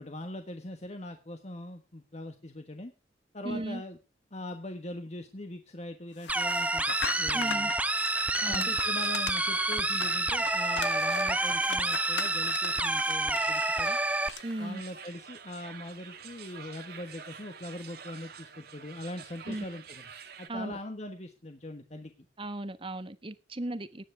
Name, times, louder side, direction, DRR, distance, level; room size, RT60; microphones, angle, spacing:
voice 1, 0.0-2.9 3.3-4.0 4.3-7.7 8.5-14.0 14.6-20.1 20.4-22.1, left 1 dB, 40° left, 1.4 m, -41 dB
voice 2, 3.4-3.8 7.3-7.7 8.4-8.7 14.4-14.8 19.5-19.6 20.5-20.8 22.4-24.0, right 1 dB, 30° right, 1.3 m, -36 dB
sound 1, 6.2-14.7, left 6 dB, 75° left, 1.0 m, -40 dB
sound 2, 6.3-14.3, right 2 dB, 10° right, 0.5 m, -28 dB
sound 3, 7.7-20.5, right 7 dB, 60° right, 1.8 m, -48 dB
18.5 x 9.6 x 3.5 m
head